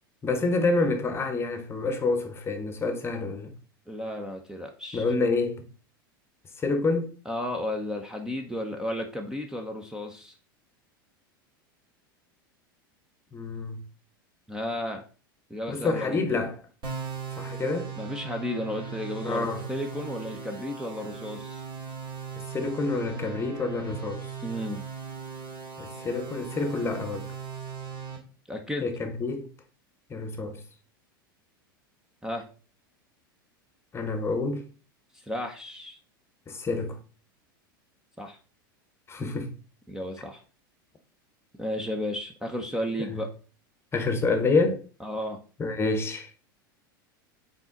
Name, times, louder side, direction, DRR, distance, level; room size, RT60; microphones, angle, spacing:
voice 1, 0.2-3.6 4.9-5.7 6.6-7.2 13.3-13.9 15.7-16.6 17.4-18.0 19.2-19.6 22.4-24.3 25.8-27.3 28.8-29.5 30.1-30.6 33.9-34.6 36.5-37.0 39.1-39.5 43.1-43.2 43.9-44.8 45.6-46.3, left 3 dB, 20° left, 1.1 m, -28 dB
voice 2, 3.9-5.1 7.3-10.3 14.5-15.0 15.5-16.4 18.0-21.6 24.4-24.8 28.5-28.9 32.2-32.5 35.1-36.0 38.2-38.4 39.9-40.4 41.6-43.3 45.0-45.4, left 1 dB, 5° right, 0.9 m, -33 dB
sound 1, 16.8-28.2, right 6 dB, 40° right, 2.9 m, -38 dB
5.9 x 4.3 x 3.9 m
hypercardioid pair, 90°, 12 cm